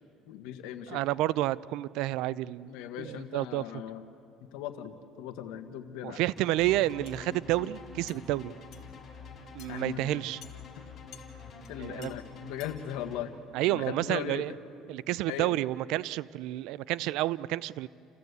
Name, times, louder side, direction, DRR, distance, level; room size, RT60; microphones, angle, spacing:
voice 1, 0.3-1.0 2.7-4.0 4.5-6.2 9.7-10.0 11.7-13.3 13.7-14.4 15.3-15.5, left 10 dB, 85° left, 8 dB, 1.5 m, -38 dB
voice 2, 0.9-2.7 3.0-3.6 6.0-8.5 9.5-10.4 11.8-12.1 13.5-14.5 14.9-17.9, right 16 dB, 75° right, 20 dB, 0.4 m, -30 dB
sound 1, 6.4-13.2, left 5 dB, 40° left, 5.2 m, -47 dB
sound 2, 7.1-7.2 8.1-8.2 8.7-8.9 9.6-9.7 10.4-10.6 11.1-11.3 11.6-11.7 12.0-12.1 12.6-12.8, left 11 dB, 65° left, 2.1 m, -51 dB
29.0 x 15.0 x 8.1 m, 2.5 s
cardioid pair, 120°, 0 cm